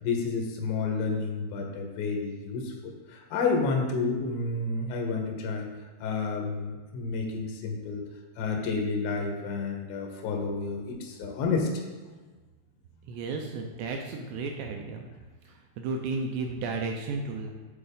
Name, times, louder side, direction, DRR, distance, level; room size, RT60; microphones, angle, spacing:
voice 1, 0.0-5.7 6.0-8.0 8.4-11.7, left 4 dB, 90° left, 2 dB, 3.2 m, -30 dB
voice 2, 13.1-15.1 15.8-17.5, right 3 dB, 85° right, 3 dB, 2.5 m, -33 dB
8.6 x 4.2 x 3.5 m, 1.3 s
omnidirectional pair, 5.2 m